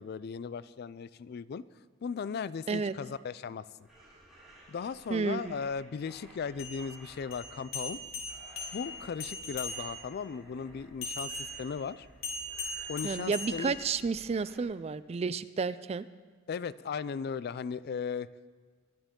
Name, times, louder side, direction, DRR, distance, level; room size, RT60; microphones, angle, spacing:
voice 1, 0.0-1.6 2.0-3.9 4.7-8.0 8.7-12.1 12.9-13.8 16.5-18.3, left 6 dB, 50° left, 18 dB, 0.3 m, -37 dB
sound 1, 3.8-14.6, right 1 dB, ahead, 3.8 m, -56 dB
voice 2, 5.1-5.5 13.0-16.0, right 5 dB, 30° right, 16 dB, 0.3 m, -31 dB
sound 2, 6.5-10.2 11.0-14.2, left 2 dB, 80° left, 3.7 m, -40 dB
21.5 x 11.5 x 3.7 m, 1.5 s
head